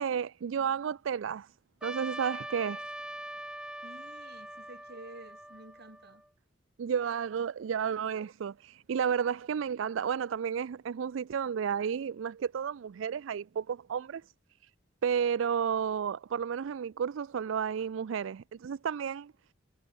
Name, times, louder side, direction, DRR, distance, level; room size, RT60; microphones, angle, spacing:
voice 1, 0.0-1.5 1.8-2.9 6.8-14.2 14.6-14.7 15.0-19.3, right 7 dB, 70° right, 0.4 m, -32 dB
Trumpet, 1.8-6.3, right 1 dB, 5° right, 0.9 m, -42 dB
voice 2, 3.8-6.2, right 1 dB, 55° right, 7.0 m, -50 dB
head